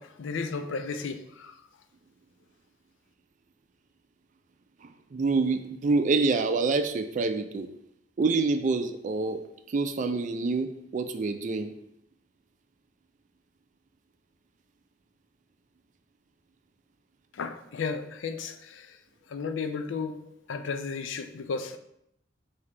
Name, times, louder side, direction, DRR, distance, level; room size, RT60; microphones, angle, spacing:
voice 1, 0.0-1.6 17.3-19.0 19.3-21.8, left 5 dB, 85° left, 8 dB, 0.4 m, -34 dB
voice 2, 5.1-7.7 8.2-9.4 9.7-11.7, right 3 dB, 40° right, 8 dB, 0.4 m, -26 dB
4.9 x 2.8 x 3.3 m, 0.76 s
head